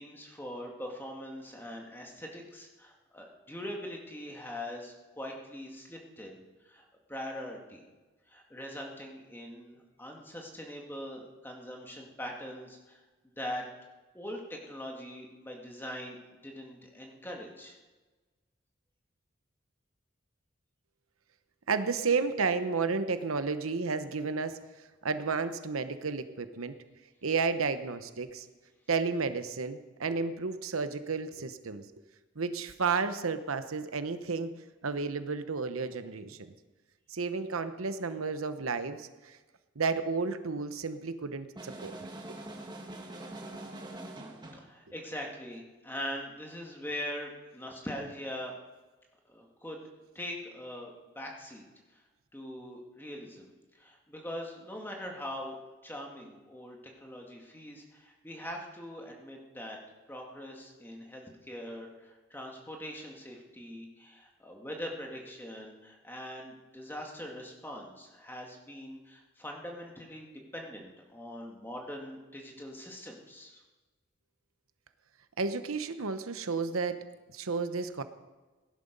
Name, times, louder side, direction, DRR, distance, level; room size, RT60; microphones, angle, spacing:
voice 1, 0.0-6.8 7.1-7.8 8.3-13.6 14.1-17.8 44.6-48.5 49.3-49.8 50.1-51.6 51.9-52.0 52.3-59.8 60.1-70.3 70.5-73.6, equal, 10° left, 0 dB, 2.0 m, -42 dB
voice 2, 21.7-26.7 27.2-28.5 28.9-31.8 32.4-34.5 34.8-36.5 37.1-39.4 39.8-42.0 42.3-42.4 75.4-77.0 77.3-78.0, right 4 dB, 90° right, 11 dB, 0.9 m, -32 dB
sound 1, 41.6-44.7, right 1 dB, 20° right, 1.5 m, -43 dB
17.5 x 11.0 x 5.3 m, 1.2 s
head